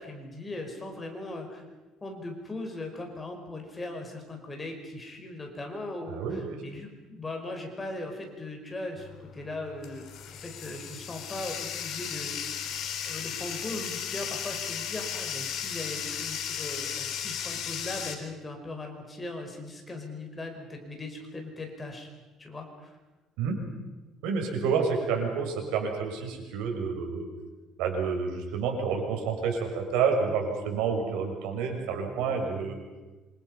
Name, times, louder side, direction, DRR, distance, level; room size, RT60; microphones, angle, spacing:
voice 1, 0.0-1.6 2.0-10.0 10.3-12.3 13.0-22.1 22.4-23.0, left 2 dB, 20° left, 3 dB, 5.1 m, -39 dB
voice 2, 6.1-6.6 23.4-23.6 24.2-27.3 27.8-32.8, right 5 dB, 90° right, 2 dB, 6.4 m, -29 dB
Bathtub (filling or washing), 9.0-18.2, left 8 dB, 60° left, 3.6 m, -35 dB
27.0 x 26.5 x 5.7 m, 1.2 s
cardioid pair, 135°, 0 cm